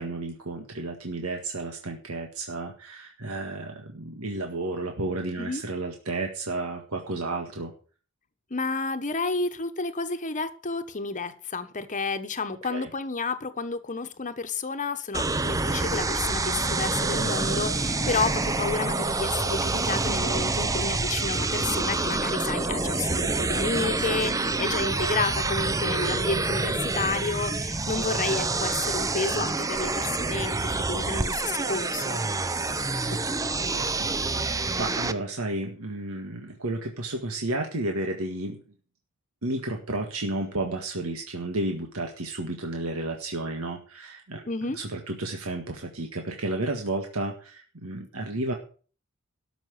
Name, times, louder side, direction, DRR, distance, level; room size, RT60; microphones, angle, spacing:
voice 1, 0.0-7.7 12.7-12.9 33.1-33.2 33.6-38.6 39.4-48.5, right 2 dB, 90° right, 1.7 m, -32 dB
voice 2, 8.5-32.2 44.5-44.8, left 4 dB, 35° left, 1.2 m, -31 dB
sound 1, 15.1-35.1, right 3 dB, 15° right, 0.6 m, -27 dB
sound 2, 17.0-17.9 18.3-21.8 22.3-27.2 28.1-28.6 30.4-30.5 30.8-31.3 31.5-32.3 33.7-33.8, right 4 dB, 55° right, 1.0 m, -43 dB
13.0 x 6.1 x 7.5 m
head